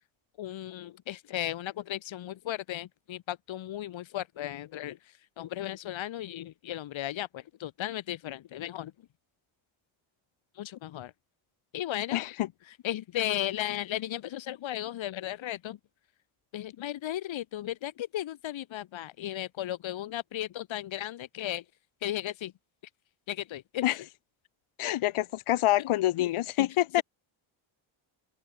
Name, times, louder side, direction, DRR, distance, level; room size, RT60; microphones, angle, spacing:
voice 1, 0.4-8.9 10.5-11.1 11.7-12.2 12.8-15.8 16.5-21.6 22.0-22.5 23.3-24.0, left 13 dB, 65° left, 4.8 m, -35 dB
voice 2, 12.1-12.5 23.8-24.0 24.8-27.0, left 15 dB, 85° left, 6.5 m, -26 dB
open air
cardioid pair, 150°, 49 cm